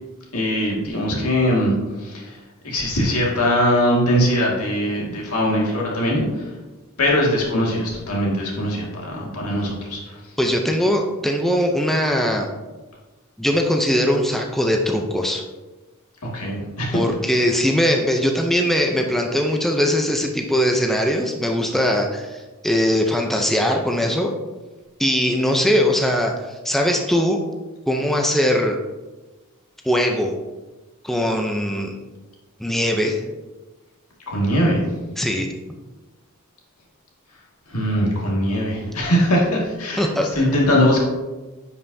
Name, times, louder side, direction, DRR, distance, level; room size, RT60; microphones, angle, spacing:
voice 1, 0.3-2.4 2.6-6.5 7.0-10.2 16.2-17.0 34.3-35.0 37.7-41.0, equal, 80° left, -3 dB, 2.0 m, -21 dB
voice 2, 10.4-12.5 13.4-15.4 16.9-24.3 25.0-27.4 27.9-28.8 29.8-30.3 31.0-31.9 32.6-33.2 35.2-35.5 40.0-40.3, equal, ahead, 2 dB, 0.5 m, -20 dB
10.0 x 5.6 x 2.7 m, 1.2 s
head